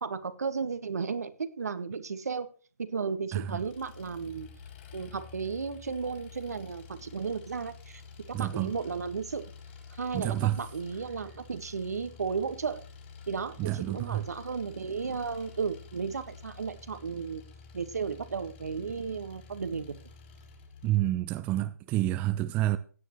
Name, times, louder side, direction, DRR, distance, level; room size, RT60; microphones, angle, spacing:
voice 1, 0.0-2.5 2.8-4.5 4.9-8.0 8.3-9.4 10.0-12.8 13.3-17.4 17.7-19.9, right 5 dB, 70° right, 1.6 m, -34 dB
voice 2, 3.3-3.6 8.3-8.7 10.1-10.6 13.6-14.3 20.8-22.8, right 14 dB, 15° right, 0.5 m, -29 dB
Engine, 3.5-21.0, left 5 dB, 35° left, 4.8 m, -50 dB
16.5 x 9.2 x 3.1 m
figure-of-eight pair, 140°, 9 cm